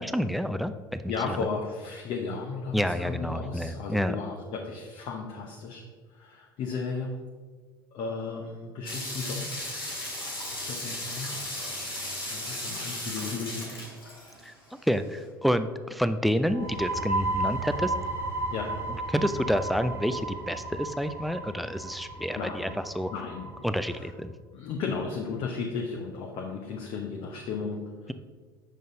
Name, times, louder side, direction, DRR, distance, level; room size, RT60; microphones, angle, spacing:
voice 1, 0.0-1.0 2.7-4.2 14.4-14.5 14.8-17.9 19.1-22.7 22.9-23.1 23.6-24.3, equal, ahead, 11 dB, 0.4 m, -28 dB
voice 2, 1.1-7.2 7.9-10.0 10.5-11.3 12.3-13.7 18.5-18.8 22.3-22.8 23.1-24.1 24.5-28.1, left 4 dB, 50° left, 1 dB, 0.8 m, -35 dB
sound 1, 8.9-14.7, left 1 dB, 90° left, 1.8 m, -36 dB
sound 2, 16.5-23.9, right 2 dB, 20° right, 1.4 m, -33 dB
6.6 x 5.3 x 3.9 m, 1.5 s
figure-of-eight pair, 70°, 11 cm